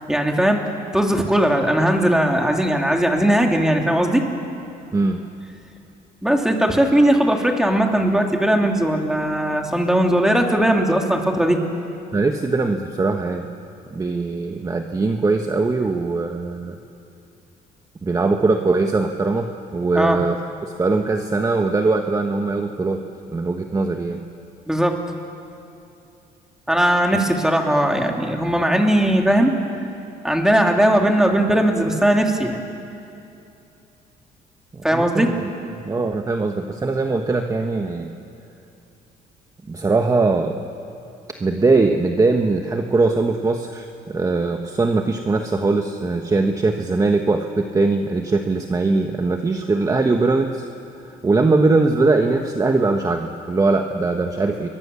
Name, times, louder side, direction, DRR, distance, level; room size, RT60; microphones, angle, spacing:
voice 1, 0.0-4.2 6.2-11.6 19.9-20.2 24.7-25.0 26.7-29.5 30.2-32.6 34.8-35.3, right 1 dB, 5° right, 2 dB, 3.0 m, -18 dB
voice 2, 12.1-13.5 13.9-16.7 18.0-23.0 23.3-24.2 27.1-27.2 34.7-35.5 35.8-38.1 39.7-40.6 41.4-50.7 51.1-54.7, right 3 dB, 20° right, 5 dB, 1.3 m, -21 dB
29.5 x 23.0 x 7.1 m, 2.7 s
cardioid pair, 110°, 17 cm